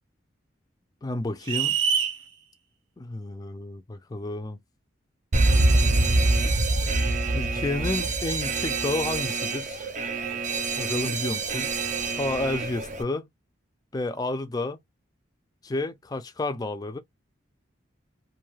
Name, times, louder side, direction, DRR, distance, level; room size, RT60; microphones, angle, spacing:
voice 1, 1.0-1.8 3.0-4.6 7.2-9.9 10.7-11.7 12.2-13.3 13.9-14.8 15.6-17.0, left 2 dB, 20° left, 0.4 m, -31 dB
sound 1, 1.5-2.2, right 7 dB, 90° right, 0.7 m, -24 dB
Alarm, 5.3-13.0, right 2 dB, 40° right, 0.5 m, -25 dB
2.6 x 2.3 x 3.1 m
head